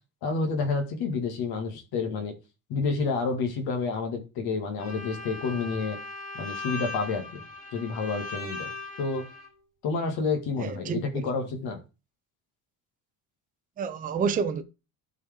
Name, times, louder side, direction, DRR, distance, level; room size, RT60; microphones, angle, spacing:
voice 1, 0.2-2.3 2.7-6.0 6.3-7.4 7.7-8.7 9.0-9.2 9.8-11.8, left 4 dB, 70° left, 2.1 m, -29 dB
Bowed string instrument, 4.8-9.5, left 3 dB, 20° left, 4.5 m, -39 dB
voice 2, 10.6-11.2 13.8-14.6, right 6 dB, 20° right, 0.6 m, -29 dB
12.5 x 4.8 x 3.7 m
cardioid pair, 170°, 38 cm